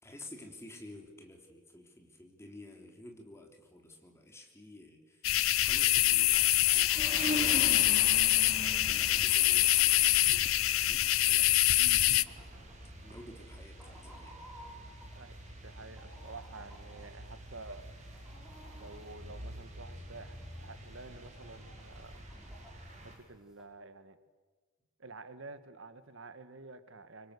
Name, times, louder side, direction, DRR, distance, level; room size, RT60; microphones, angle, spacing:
voice 1, 0.0-8.2 8.8-12.5 13.0-14.4, left 1 dB, 15° left, 2 dB, 3.5 m, -52 dB
sound 1, 5.2-12.2, left 15 dB, 85° left, 0.7 m, -25 dB
Chicken rooster, 5.9-23.6, equal, 5° right, 6.3 m, -58 dB
sound 2, 7.0-23.1, right 1 dB, 35° right, 5.1 m, -44 dB
voice 2, 15.6-17.8 18.8-22.2 23.0-24.2 25.0-27.3, right 3 dB, 70° right, 11 dB, 1.5 m, -50 dB
25.0 x 25.0 x 8.3 m, 1.4 s
head